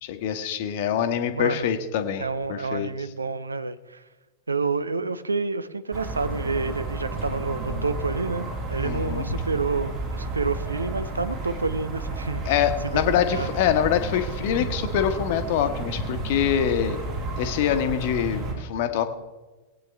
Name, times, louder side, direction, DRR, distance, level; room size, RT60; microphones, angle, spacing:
voice 1, 0.0-2.9 8.8-9.3 12.4-17.0 17.3-19.0, left 9 dB, 50° left, 8 dB, 1.1 m, -25 dB
voice 2, 1.3-1.7 2.2-4.0 4.5-13.5, right 4 dB, 80° right, 13 dB, 0.6 m, -29 dB
sound 1, 5.9-18.5, right 3 dB, 40° right, 3.6 m, -32 dB
20.0 x 8.9 x 3.4 m, 1.2 s
figure-of-eight pair, 90°, 0 cm